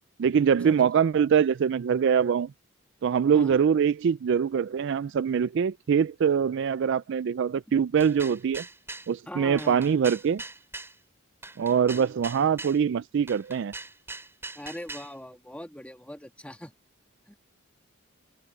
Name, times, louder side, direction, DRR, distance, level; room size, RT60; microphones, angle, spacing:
voice 1, 0.2-2.5 3.0-8.6 9.1-10.4 11.6-13.7, right 7 dB, 60° right, 0.3 m, -23 dB
sound 1, 8.0-9.1 9.6-10.9 11.4-12.8 13.3-15.1, right 3 dB, 10° right, 6.2 m, -41 dB
voice 2, 9.3-9.9 14.6-16.7 17.3-17.4, left 1 dB, 5° left, 1.9 m, -41 dB
head